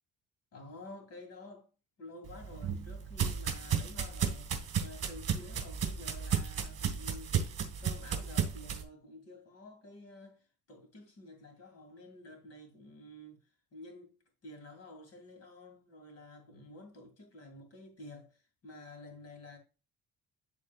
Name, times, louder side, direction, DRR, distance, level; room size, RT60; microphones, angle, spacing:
voice 1, 0.5-1.7 2.0-13.4 13.7-14.1 14.4-19.6, left 2 dB, 45° left, 2.5 m, -51 dB
sound 1, 2.2-8.8, right 7 dB, 45° right, 1.7 m, -34 dB
11.5 x 3.8 x 2.4 m
cardioid pair, 175°, 34 cm